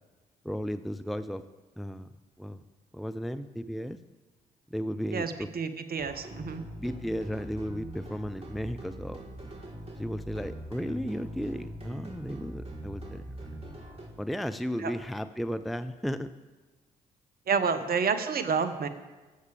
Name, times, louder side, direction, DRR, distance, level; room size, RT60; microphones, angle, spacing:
voice 1, 0.4-1.4 1.8-2.1 2.4-2.6 2.9-4.0 4.7-5.5 6.8-9.2 10.0-13.3 14.2-16.3, equal, ahead, 10 dB, 0.6 m, -34 dB
voice 2, 5.1-6.6 14.8-14.9 17.5-18.9, right 5 dB, 50° right, 10 dB, 1.1 m, -29 dB
sound 1, 6.0-14.1, right 1 dB, 30° right, 3.6 m, -42 dB
21.0 x 8.1 x 3.4 m, 1.2 s
hypercardioid pair, 45°, 20 cm